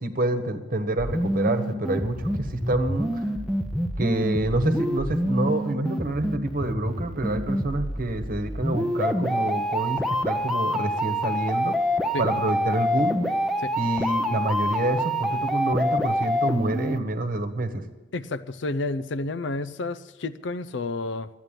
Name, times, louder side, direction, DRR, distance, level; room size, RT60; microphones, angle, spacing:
voice 1, 0.0-3.2 4.0-11.7 12.2-13.2 13.8-17.8, right 1 dB, 50° right, 8 dB, 1.2 m, -27 dB
sound 1, 1.0-17.0, equal, ahead, 0.7 m, -27 dB
voice 2, 18.1-21.3, left 2 dB, 75° left, 14 dB, 0.6 m, -30 dB
12.5 x 9.3 x 9.0 m, 1.1 s
head